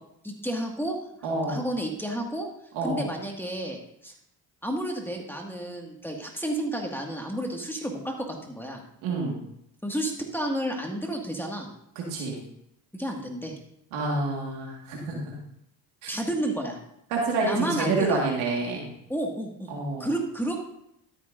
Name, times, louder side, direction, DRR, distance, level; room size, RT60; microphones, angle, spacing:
voice 1, 0.2-1.0 1.5-2.5 2.8-4.1 4.6-8.8 9.8-11.7 12.9-13.6 16.1-16.8 17.4-18.2 19.1-19.7 20.0-20.6, right 1 dB, 5° left, 0 dB, 2.0 m, -31 dB
voice 2, 1.2-1.6 2.7-3.1 9.0-9.4 12.0-12.4 13.9-15.4 16.0-16.1 17.1-18.9 19.7-20.1, right 3 dB, 90° right, -2 dB, 2.0 m, -28 dB
13.0 x 8.6 x 2.7 m, 0.76 s
supercardioid pair, 55°, 47 cm